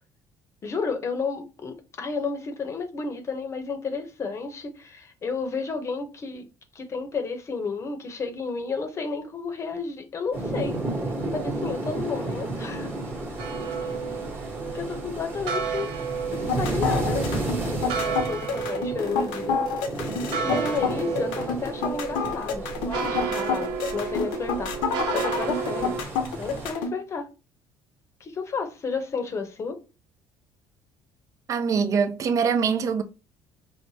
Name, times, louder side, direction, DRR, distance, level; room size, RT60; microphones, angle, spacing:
voice 1, 0.6-6.5 6.7-10.8 11.3-12.9 14.7-15.9 16.6-19.6 20.4-26.0 26.4-27.3 28.2-29.8, left 4 dB, 35° left, 0.7 m, -32 dB
sound 1, 10.3-26.7, right 2 dB, 25° right, 1.3 m, -33 dB
sound 2, 13.4-26.0, right 6 dB, 80° right, 0.6 m, -32 dB
sound 3, 16.3-26.9, left 5 dB, 90° left, 0.7 m, -28 dB
voice 2, 31.5-33.0, right 6 dB, 40° right, 0.5 m, -23 dB
4.6 x 2.1 x 2.8 m
cardioid pair, 110°, 8 cm